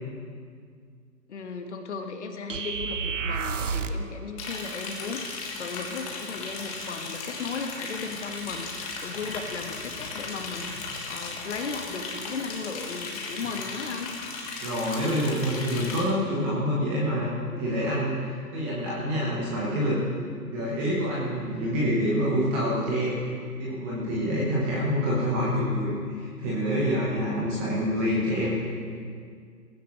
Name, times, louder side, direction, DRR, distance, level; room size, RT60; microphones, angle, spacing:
voice 1, 1.3-14.1, left 4 dB, 45° left, 5 dB, 1.5 m, -36 dB
sound 1, 2.5-4.1, right 5 dB, 50° right, 0.7 m, -30 dB
Liquid, 4.4-16.0, left 4 dB, 20° left, 1.5 m, -36 dB
voice 2, 14.6-20.0 20.5-23.2 23.6-28.5, equal, 10° right, -6 dB, 0.9 m, -27 dB
18.0 x 15.5 x 3.1 m, 2.1 s
figure-of-eight pair, 145°, 49 cm